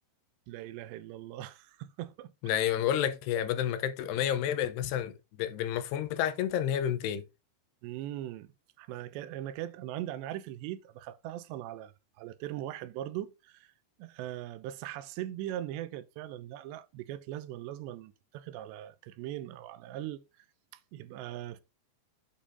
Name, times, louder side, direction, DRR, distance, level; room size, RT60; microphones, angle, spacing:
voice 1, 0.5-2.3 7.8-8.5 8.8-11.9 12.2-13.7 14.0-20.2 20.7-21.6, right 13 dB, 90° right, 2.9 m, -40 dB
voice 2, 2.4-5.1 5.4-7.2, left 10 dB, 80° left, 2.7 m, -30 dB
8.5 x 5.2 x 3.5 m
omnidirectional pair, 5.0 m